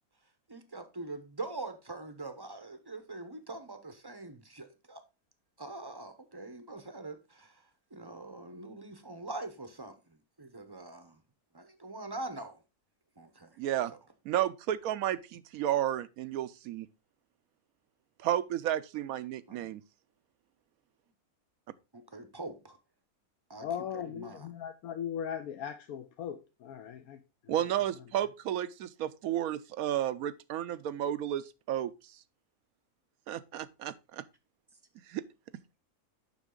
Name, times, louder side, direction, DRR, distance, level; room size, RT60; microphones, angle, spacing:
voice 1, 0.5-5.0 5.6-7.6 7.9-11.2 11.5-12.6 13.2-13.6 13.9-14.0 19.5-19.7 21.9-22.8 23.5-23.7 23.9-24.5, right 2 dB, 25° right, 0.6 m, -43 dB
voice 2, 13.6-13.9 14.2-16.9 18.2-19.8 27.5-31.9 33.3-34.2 35.1-35.2, right 11 dB, 75° right, 1.0 m, -32 dB
voice 3, 23.6-27.7, left 9 dB, 75° left, 1.1 m, -39 dB
7.2 x 5.9 x 3.7 m
omnidirectional pair, 1.5 m